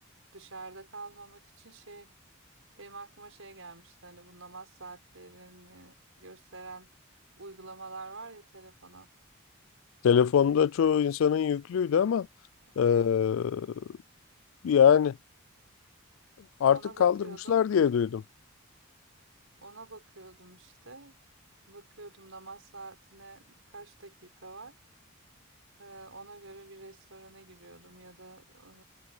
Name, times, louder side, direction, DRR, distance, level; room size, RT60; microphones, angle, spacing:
voice 1, 0.3-2.1 2.8-6.9 7.4-9.1 12.6-13.1 16.7-17.7 19.6-21.2 21.6-24.7 25.8-28.8, right 3 dB, 70° right, 6.2 m, -47 dB
voice 2, 10.0-12.3 12.8-13.7 14.6-15.2 16.6-18.2, left 8 dB, 70° left, 0.3 m, -23 dB
head